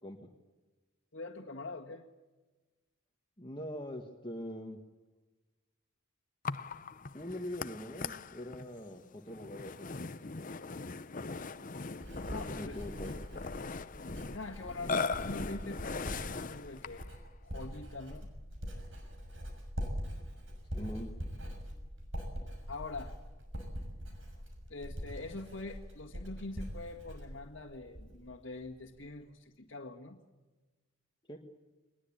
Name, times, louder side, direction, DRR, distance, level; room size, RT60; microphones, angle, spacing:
voice 1, 1.1-2.0 12.3-12.8 14.3-17.1 17.4-18.3 22.7-23.1 24.7-30.2, left 2 dB, 60° left, -2 dB, 1.9 m, -44 dB
voice 2, 3.4-4.8 7.1-9.9 12.3-13.2 20.8-21.1 31.3-31.4, left 1 dB, 25° left, 2 dB, 1.6 m, -42 dB
Burping eructation, 6.4-17.1, left 4 dB, 40° left, 0.7 m, -40 dB
Writing, 11.4-28.3 28.6-29.1, equal, 65° right, 6.4 m, -43 dB
22.0 x 21.0 x 8.7 m, 1.2 s
head